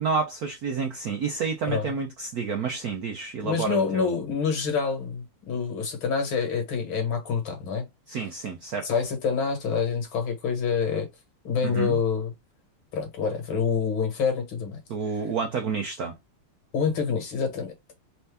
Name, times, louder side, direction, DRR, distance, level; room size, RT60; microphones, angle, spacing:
voice 1, 0.0-4.1 8.1-8.9 11.6-12.0 14.9-16.2, right 5 dB, 70° right, 0.8 m, -29 dB
voice 2, 3.4-7.9 8.8-11.1 11.4-12.3 12.9-14.8 16.7-17.7, left 6 dB, 70° left, 2.3 m, -27 dB
4.3 x 2.8 x 3.4 m
omnidirectional pair, 2.3 m